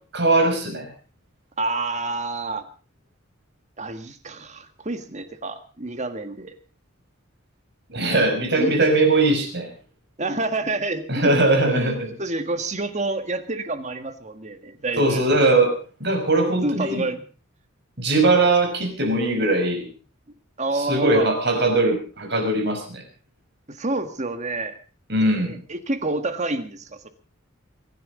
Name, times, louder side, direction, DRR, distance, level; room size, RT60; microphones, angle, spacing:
voice 1, 0.1-0.9 7.9-9.7 11.1-12.1 15.0-15.7 16.0-17.0 18.0-19.9 20.7-23.0 25.1-25.6, right 2 dB, 55° right, 4 dB, 5.4 m, -20 dB
voice 2, 1.6-2.7 3.8-6.5 8.6-8.8 10.2-15.2 16.6-17.2 20.6-21.3 23.7-24.8 25.2-27.1, right 2 dB, 35° right, 10 dB, 1.6 m, -28 dB
23.5 x 11.0 x 5.1 m, 0.38 s
head